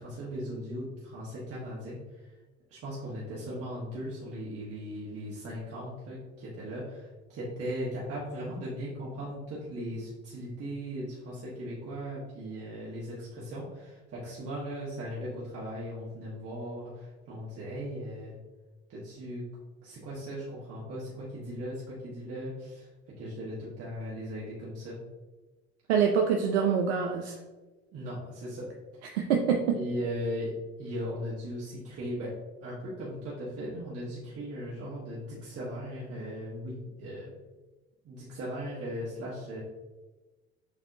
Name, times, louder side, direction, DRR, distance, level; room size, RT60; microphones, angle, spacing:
voice 1, 0.0-2.3 2.7-18.4 18.9-19.4 19.8-22.9 23.2-25.0 27.9-28.7 29.7-30.5 30.8-32.3 32.6-37.3 38.0-39.6, equal, 45° right, -6 dB, 1.4 m, -38 dB
voice 2, 25.9-27.3 29.1-29.8, right 7 dB, 90° right, 2 dB, 0.5 m, -25 dB
7.1 x 2.7 x 2.6 m, 1.2 s
hypercardioid pair, 75°, 32 cm